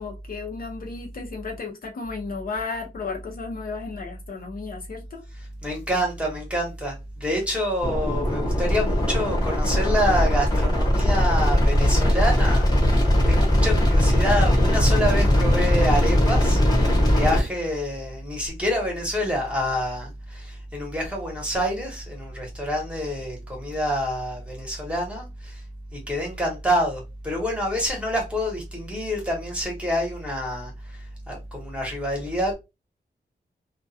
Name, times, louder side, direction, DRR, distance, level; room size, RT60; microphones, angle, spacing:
voice 1, 0.0-5.2, left 4 dB, 55° left, 0.6 m, -34 dB
voice 2, 5.6-25.6 25.9-32.5, equal, 5° right, 0.9 m, -27 dB
sound 1, 7.8-17.4, left 1 dB, 20° left, 0.9 m, -20 dB
2.3 x 2.2 x 2.6 m
wide cardioid pair, 165°, 18 cm